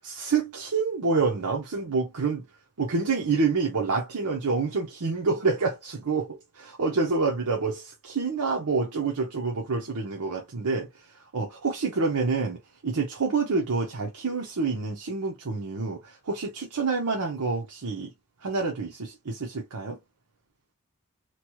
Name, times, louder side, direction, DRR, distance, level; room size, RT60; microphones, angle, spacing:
voice 1, 0.1-2.4 2.8-10.9 11.3-18.1 18.4-20.0, right 4 dB, 90° right, 0.8 m, -27 dB
3.0 x 2.3 x 3.0 m
head